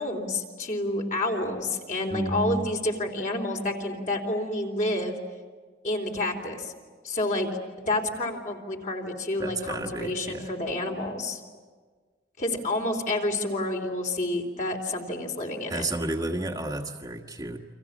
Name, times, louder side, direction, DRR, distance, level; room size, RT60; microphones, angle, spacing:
voice 1, 0.0-5.2 5.8-6.7 7.0-7.5 7.9-11.4 12.4-15.9, left 1 dB, 45° left, 2 dB, 3.7 m, -29 dB
voice 2, 2.1-2.6 9.4-10.5 15.7-17.6, right 1 dB, 20° right, 1 dB, 1.4 m, -31 dB
29.5 x 26.0 x 7.3 m, 1.5 s
head